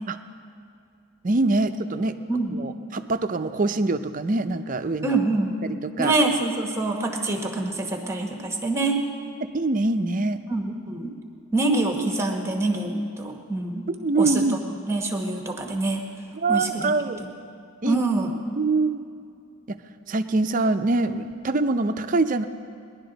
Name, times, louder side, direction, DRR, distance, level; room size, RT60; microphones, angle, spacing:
voice 1, 1.2-2.1 2.5-5.2 6.0-6.1 9.5-10.4 14.0-14.6 16.4-17.2 17.8-18.0 18.6-19.0 20.1-22.4, right 3 dB, 40° right, 9 dB, 0.5 m, -24 dB
voice 2, 2.3-2.6 5.0-5.6 6.0-9.0 10.5-11.1 11.5-13.9 14.2-14.4 14.8-16.1 16.5-16.9 17.2-17.3 17.8-18.3, right 2 dB, 10° right, 2 dB, 1.1 m, -25 dB
20.0 x 11.0 x 3.9 m, 2.5 s
head